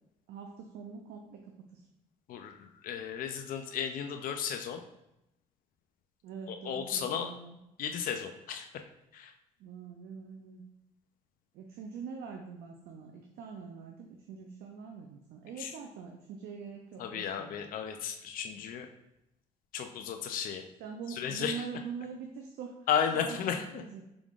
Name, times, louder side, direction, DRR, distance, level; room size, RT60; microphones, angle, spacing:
voice 1, 0.3-1.8 6.2-7.6 9.6-10.6 11.5-17.5 20.8-22.8 23.1-24.0, right 6 dB, 75° right, 2 dB, 0.5 m, -44 dB
voice 2, 2.3-4.8 6.5-7.3 7.8-8.8 9.1-9.3 15.6-15.7 17.0-18.9 19.7-20.6 21.1-21.7 22.9-23.8, left 8 dB, 60° left, 5 dB, 0.4 m, -34 dB
4.8 x 3.5 x 2.4 m, 0.87 s
supercardioid pair, 70°, 16 cm